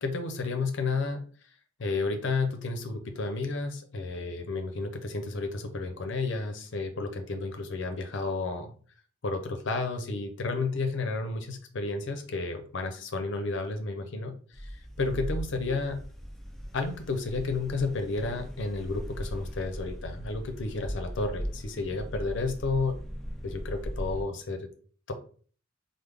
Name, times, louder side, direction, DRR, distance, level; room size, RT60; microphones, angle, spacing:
voice 1, 0.0-1.2 1.8-8.7 9.2-16.0 16.7-23.0 23.4-24.7 25.1-25.2, left 3 dB, 65° left, 6 dB, 0.6 m, -32 dB
sound 1, 14.5-24.2, equal, ahead, 0.3 m, -38 dB
3.5 x 2.0 x 3.3 m, 0.43 s
head